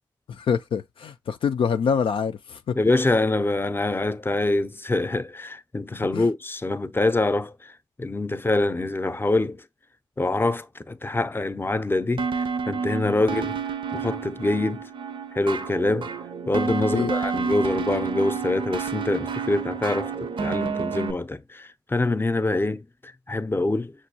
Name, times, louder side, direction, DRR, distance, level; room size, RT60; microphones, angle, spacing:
voice 1, 0.3-2.8 5.9-6.3 13.0-13.1 16.9-17.1, left 6 dB, 75° left, 0.3 m, -26 dB
voice 2, 2.8-7.7 8.0-9.6 10.2-12.3 12.7-13.6 13.9-14.9 15.3-16.1 16.5-23.9, left 2 dB, 25° left, 0.6 m, -25 dB
sound 1, 12.2-21.1, right 5 dB, 65° right, 0.5 m, -29 dB
6.1 x 2.6 x 2.7 m
cardioid pair, 40°, 9 cm